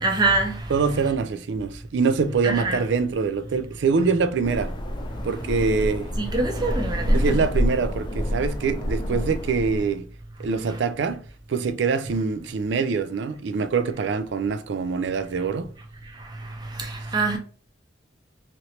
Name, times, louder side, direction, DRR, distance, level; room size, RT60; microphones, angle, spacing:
voice 1, 0.0-0.6 2.4-2.8 6.2-7.4 16.8-17.4, right 3 dB, 25° right, 0.6 m, -24 dB
voice 2, 0.7-4.7 5.2-6.1 7.1-10.1 10.4-11.2 11.5-15.7, right 5 dB, 80° right, 0.4 m, -24 dB
sound 1, 4.4-10.0, equal, 25° left, 0.4 m, -27 dB
3.0 x 2.8 x 2.8 m
head